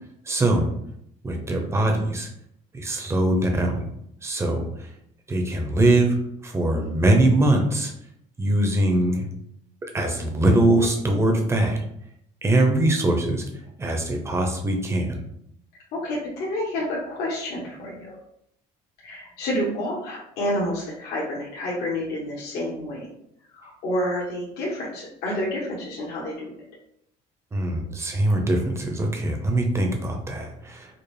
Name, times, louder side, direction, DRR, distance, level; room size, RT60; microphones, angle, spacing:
voice 1, 0.3-0.7 1.2-2.3 2.7-3.8 4.2-4.7 5.3-6.1 6.4-7.9 8.4-9.2 9.9-11.8 12.4-13.4 13.8-15.2 27.5-30.9, right 1 dB, 15° right, 2 dB, 0.6 m, -22 dB
voice 2, 15.9-18.2 19.0-23.1 23.5-26.5, left 1 dB, 75° left, -5 dB, 1.1 m, -29 dB
4.9 x 2.0 x 3.2 m, 0.74 s
cardioid pair, 140°, 17 cm